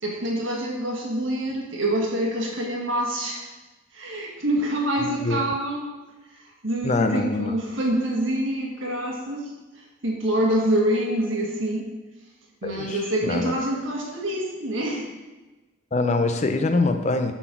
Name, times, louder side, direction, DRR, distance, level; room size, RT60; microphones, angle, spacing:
voice 1, 0.0-3.4 3.9-5.9 6.6-9.5 10.0-11.9 12.6-15.1, right 1 dB, 75° right, -1 dB, 1.7 m, -26 dB
voice 2, 6.8-7.5 12.6-13.0 13.2-13.5 15.9-17.3, left 3 dB, 35° left, 7 dB, 0.5 m, -23 dB
7.6 x 4.1 x 5.9 m, 1.1 s
head